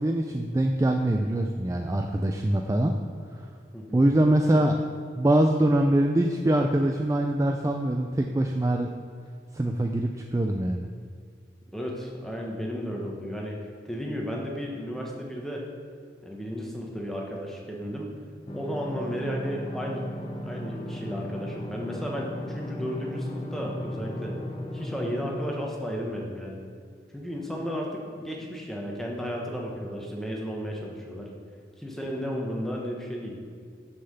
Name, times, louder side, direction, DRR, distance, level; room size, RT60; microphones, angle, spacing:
voice 1, 0.0-2.9 3.3-3.5 3.9-4.8 5.2-8.9 9.5-10.9, right 1 dB, 15° right, 3 dB, 0.3 m, -23 dB
voice 2, 11.7-15.6 16.2-18.1 18.5-20.1 20.4-24.4 24.7-26.6 27.1-31.3 31.8-33.4, equal, ahead, -2 dB, 1.1 m, -33 dB
sound 1, 18.5-25.5, left 1 dB, 25° left, 0.8 m, -36 dB
6.7 x 5.6 x 6.8 m, 2.1 s
head